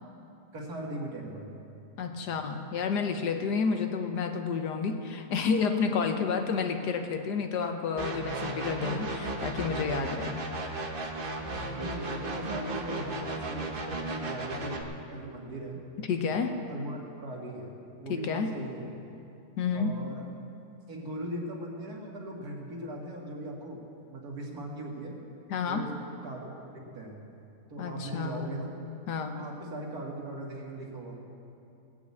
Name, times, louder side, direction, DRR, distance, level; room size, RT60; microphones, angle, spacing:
voice 1, 0.5-1.6 11.7-14.8 15.1-15.8 16.3-17.7 18.0-18.9 19.7-20.2 20.9-23.8 24.1-25.1 25.6-25.9 26.2-26.4 26.7-27.2 27.7-28.7 29.3-31.2, right 1 dB, 65° right, -2 dB, 2.5 m, -39 dB
voice 2, 2.0-10.4 16.1-16.5 18.1-18.5 19.6-19.9 25.5-25.8 27.8-28.6 29.1-29.5, left 5 dB, 80° left, 6 dB, 1.5 m, -30 dB
sound 1, 8.0-14.8, right 2 dB, 40° right, 1.1 m, -35 dB
18.0 x 6.1 x 8.4 m, 2.7 s
omnidirectional pair, 1.7 m